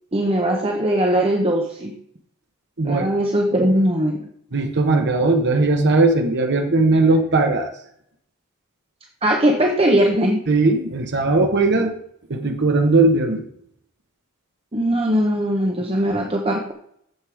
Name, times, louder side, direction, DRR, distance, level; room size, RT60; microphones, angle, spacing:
voice 1, 0.1-1.9 2.8-4.3 9.2-10.4 11.7-11.8 14.7-16.7, right 1 dB, 25° right, 1 dB, 1.0 m, -20 dB
voice 2, 4.5-7.7 10.5-11.9 12.3-13.4, right 3 dB, 55° right, 3 dB, 1.3 m, -18 dB
9.4 x 7.6 x 5.0 m, 0.69 s
head